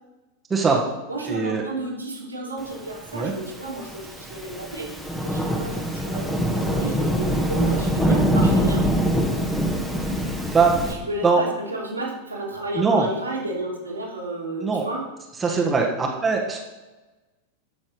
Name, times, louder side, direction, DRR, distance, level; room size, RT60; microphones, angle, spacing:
voice 1, 0.5-0.8 1.3-1.6 3.1-3.3 8.0-8.2 10.5-10.7 11.2-11.4 12.7-13.0 14.6-14.8 15.4-16.6, right 4 dB, 15° right, -1 dB, 1.6 m, -21 dB
voice 2, 1.1-4.9 5.2-8.9 10.9-15.0, right 2 dB, 85° right, -4 dB, 3.0 m, -32 dB
Thunderstorm / Rain, 3.2-10.9, equal, 5° left, 1.7 m, -24 dB
13.5 x 6.2 x 5.1 m, 1.1 s
figure-of-eight pair, 90°, 0 cm